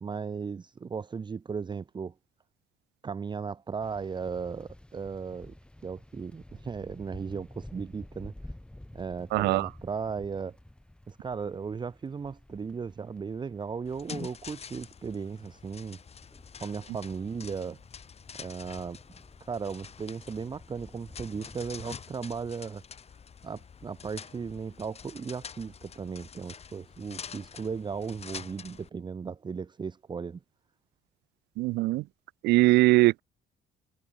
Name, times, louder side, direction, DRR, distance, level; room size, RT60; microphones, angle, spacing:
voice 1, 0.0-2.1 3.0-5.5 5.8-8.3 8.9-10.6 11.1-16.0 16.6-17.8 18.3-19.0 19.5-22.8 23.4-30.4, right 5 dB, 25° right, 1.1 m, -36 dB
sound 1, 3.8-14.0 15.7-21.9, left 1 dB, 5° left, 7.2 m, -51 dB
voice 2, 9.3-9.7 31.6-32.0 32.4-33.2, right 20 dB, 80° right, 0.6 m, -21 dB
sound 2, 13.8-28.9, left 6 dB, 40° left, 8.0 m, -46 dB
cardioid pair, 110°, 17 cm